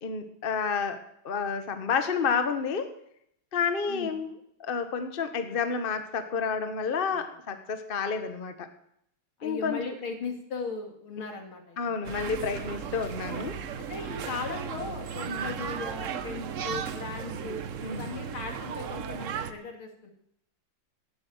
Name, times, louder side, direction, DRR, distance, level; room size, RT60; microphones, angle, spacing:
voice 1, 0.0-2.9 3.5-4.3 4.6-8.7 9.4-9.8 11.8-13.6 15.3-15.5 17.8-18.1, left 5 dB, 35° left, 8 dB, 1.0 m, -30 dB
voice 2, 9.4-12.0 13.8-17.6 17.9-20.1, left 4 dB, 75° left, 3 dB, 3.1 m, -38 dB
sound 1, 12.0-19.5, right 7 dB, 65° right, 0.7 m, -36 dB
15.5 x 8.5 x 7.9 m, 0.74 s
omnidirectional pair, 2.4 m